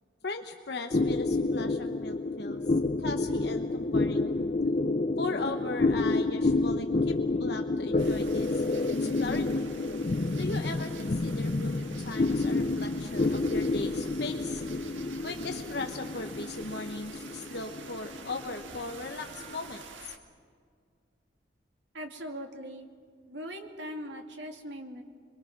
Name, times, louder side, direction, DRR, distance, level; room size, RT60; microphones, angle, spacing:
voice 1, 0.2-2.6 3.0-4.3 5.2-8.7 9.2-9.7 10.4-14.6 15.2-20.1, left 3 dB, 60° left, 4 dB, 1.1 m, -38 dB
sound 1, 0.9-19.7, left 2 dB, 40° left, 0.5 m, -29 dB
sound 2, 8.0-20.2, right 4 dB, 85° right, 1.8 m, -48 dB
voice 2, 21.9-22.9 23.3-25.0, equal, 70° right, 3 dB, 2.5 m, -40 dB
28.5 x 22.5 x 6.1 m, 2.1 s
head